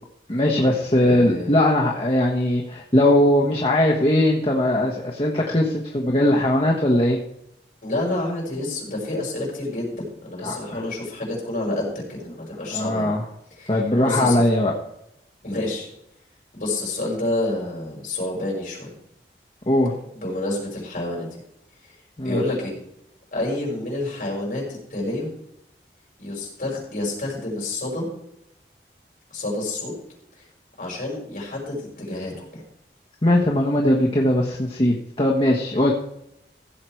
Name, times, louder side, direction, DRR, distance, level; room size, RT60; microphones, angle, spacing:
voice 1, 0.3-7.2 10.4-10.8 12.7-13.2 13.7-14.7 19.7-19.9 22.2-22.4 33.2-35.9, left 1 dB, 30° left, -1 dB, 1.3 m, -20 dB
voice 2, 1.0-1.6 7.8-13.1 13.6-13.7 14.0-14.4 15.4-15.9 16.5-18.9 20.1-21.3 22.2-22.7 23.3-24.6 24.9-25.3 26.2-28.1 29.3-29.9 30.4-30.5 30.8-32.6, left 2 dB, 50° left, -2 dB, 5.7 m, -28 dB
16.0 x 7.8 x 4.6 m, 0.80 s
head